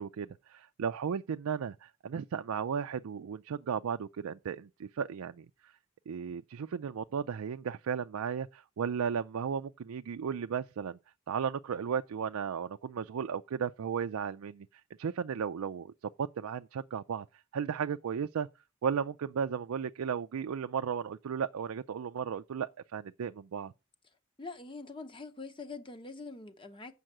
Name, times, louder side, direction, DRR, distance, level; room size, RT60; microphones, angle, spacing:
voice 1, 0.0-5.7 6.1-11.0 11.3-14.7 15.0-17.3 17.5-18.5 18.8-23.7, right 7 dB, 90° right, 0.4 m, -35 dB
voice 2, 24.4-26.9, left 3 dB, 25° left, 0.9 m, -44 dB
7.7 x 5.5 x 7.3 m
head